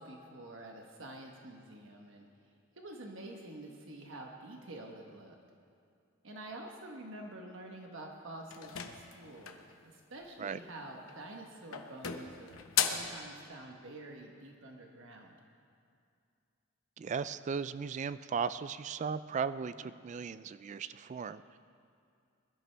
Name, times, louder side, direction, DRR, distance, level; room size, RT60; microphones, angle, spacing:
voice 1, 0.0-2.3 2.8-5.4 6.2-15.4 19.8-19.9, right 1 dB, 65° right, 1 dB, 1.2 m, -48 dB
sound 1, 8.5-9.7 11.0-11.4 11.7-13.2, left 8 dB, 80° left, 0.9 m, -35 dB
voice 2, 17.0-21.6, right 6 dB, 35° right, 14 dB, 0.3 m, -37 dB
21.5 x 12.0 x 3.4 m, 2.4 s
head